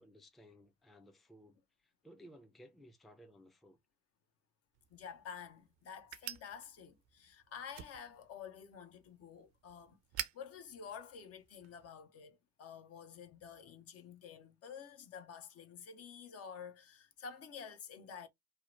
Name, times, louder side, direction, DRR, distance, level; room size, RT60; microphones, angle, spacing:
voice 1, 0.0-3.8, equal, ahead, 0.4 m, -59 dB
sound 1, 4.7-11.9, right 13 dB, 60° right, 0.5 m, -50 dB
voice 2, 4.9-10.0 10.3-18.3, left 7 dB, 50° left, 0.7 m, -50 dB
2.8 x 2.1 x 2.3 m
figure-of-eight pair, 50°, 31 cm